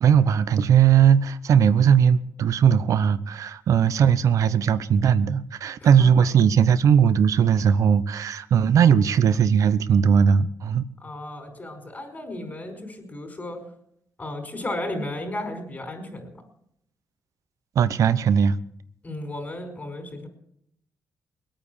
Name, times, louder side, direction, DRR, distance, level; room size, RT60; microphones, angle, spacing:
voice 1, 0.0-10.8 17.8-18.6, right 7 dB, 65° right, 0.8 m, -19 dB
voice 2, 5.8-6.3 11.0-13.6 14.2-16.3 19.0-20.3, left 1 dB, 30° left, 4.9 m, -34 dB
21.0 x 9.0 x 7.0 m
cardioid pair, 100°, 6 cm